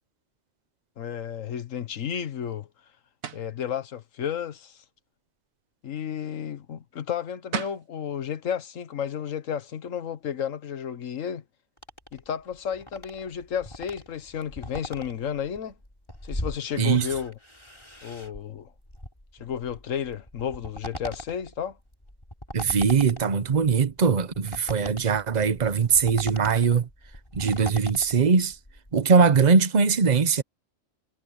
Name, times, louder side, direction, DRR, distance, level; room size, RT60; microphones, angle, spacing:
voice 1, 1.0-2.7 3.3-4.8 5.8-11.4 12.1-15.8 16.2-17.3 18.0-18.7 19.4-21.8, left 8 dB, 75° left, 1.5 m, -32 dB
sound 1, 3.2-3.5 7.2-7.3 7.5-7.9, right 6 dB, 85° right, 1.6 m, -33 dB
sound 2, 11.8-29.0, left 1 dB, 20° left, 4.8 m, -41 dB
voice 2, 22.5-26.9 27.3-28.6 28.9-30.4, right 5 dB, 35° right, 1.0 m, -21 dB
omnidirectional pair, 1.4 m